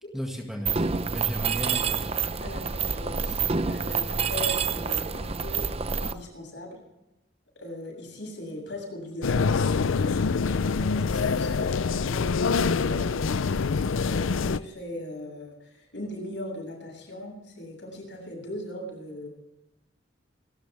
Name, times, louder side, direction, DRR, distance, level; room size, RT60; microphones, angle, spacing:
voice 1, 0.1-2.1, equal, ahead, 1 dB, 1.9 m, -35 dB
Mechanisms, 0.7-6.1, right 5 dB, 30° right, 0.7 m, -28 dB
voice 2, 2.4-5.7 6.0-6.7 7.6-13.5 14.0-19.3, left 1 dB, 60° left, 0 dB, 7.4 m, -39 dB
sound 1, 9.2-14.6, left 4 dB, 85° left, 0.5 m, -25 dB
28.0 x 13.0 x 3.5 m, 1.0 s
head